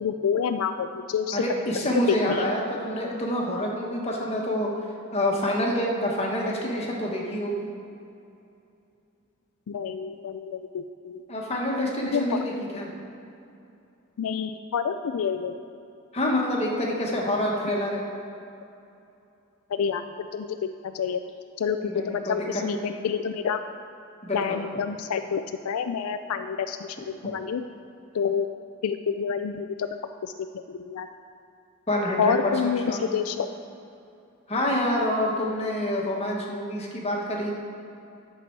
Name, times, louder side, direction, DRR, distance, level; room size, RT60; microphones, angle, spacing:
voice 1, 0.0-1.4 2.1-2.5 9.7-11.2 12.1-12.4 14.2-15.5 19.7-20.0 20.3-20.5 20.8-21.2 21.6-23.6 24.3-26.8 27.2-27.6 28.1-28.5 28.8-30.0 30.2-31.1 32.2-33.5, left 6 dB, 85° left, 8 dB, 0.4 m, -28 dB
voice 2, 1.3-4.7 5.1-7.7 11.3-12.9 16.1-18.1 21.8-22.8 24.2-24.6 31.9-32.3 32.6-33.0 34.5-37.6, left 1 dB, 30° left, -2 dB, 1.4 m, -27 dB
11.0 x 6.8 x 4.6 m, 2.7 s
head